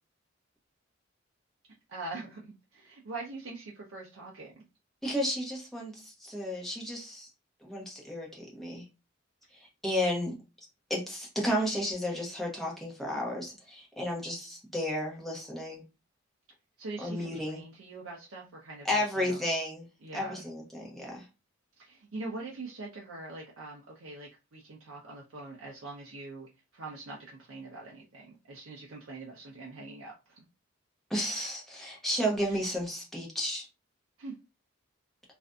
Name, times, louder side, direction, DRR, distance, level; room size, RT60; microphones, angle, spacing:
voice 1, 1.9-4.6 16.8-19.4 20.0-20.5 21.8-30.4 32.5-32.7 34.2-34.4, right 3 dB, 80° right, -3 dB, 0.6 m, -43 dB
voice 2, 5.0-7.3 7.6-8.8 9.5-10.3 10.9-15.8 17.0-17.6 18.8-19.9 20.1-21.3 31.1-33.7, equal, ahead, -2 dB, 0.8 m, -33 dB
2.5 x 2.5 x 2.2 m, 0.27 s
head